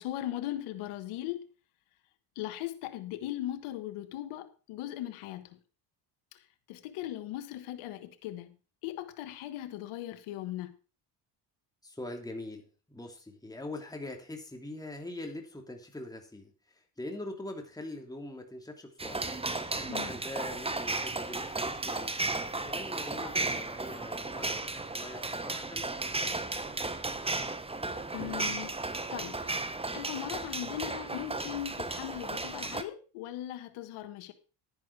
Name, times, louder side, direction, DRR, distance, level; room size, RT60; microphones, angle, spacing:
voice 1, 0.0-1.5 2.3-5.6 6.3-8.5 8.8-10.7 19.9-20.1 28.1-28.8 29.1-29.7 29.9-34.3, left 13 dB, 75° left, 1.6 m, -39 dB
voice 2, 11.8-26.8, left 2 dB, 5° left, 2.9 m, -43 dB
sound 1, 19.0-32.8, right 2 dB, 10° right, 1.2 m, -34 dB
10.5 x 10.0 x 4.8 m
supercardioid pair, 85°, 50 cm